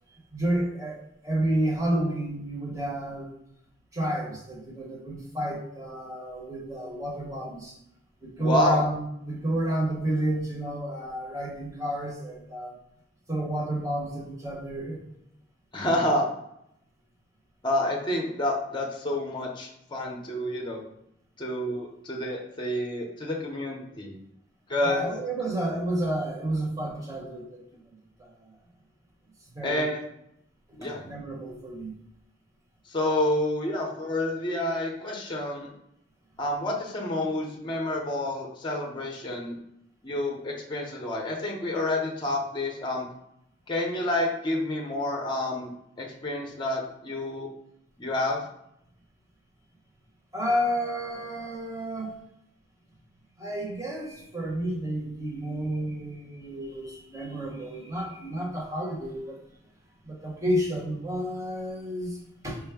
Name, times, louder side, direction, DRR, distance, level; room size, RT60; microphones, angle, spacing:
voice 1, 0.3-3.3 3.9-7.7 8.2-12.8 13.3-15.0 24.8-27.8 28.4-28.5 29.5-29.9 30.7-30.8 31.0-31.9 50.3-52.1 53.4-59.4 60.0-62.2 62.4-62.6, right 1 dB, 15° right, -3 dB, 0.9 m, -30 dB
voice 2, 8.4-8.8 15.7-16.3 17.6-20.8 21.4-24.1 24.7-25.1 29.6-30.0 30.8-31.0 32.9-35.7 36.4-39.6 40.0-43.1 43.7-45.7 46.0-47.5 48.0-48.4, left 1 dB, 25° left, 0 dB, 0.6 m, -28 dB
4.6 x 2.1 x 3.4 m, 0.77 s
head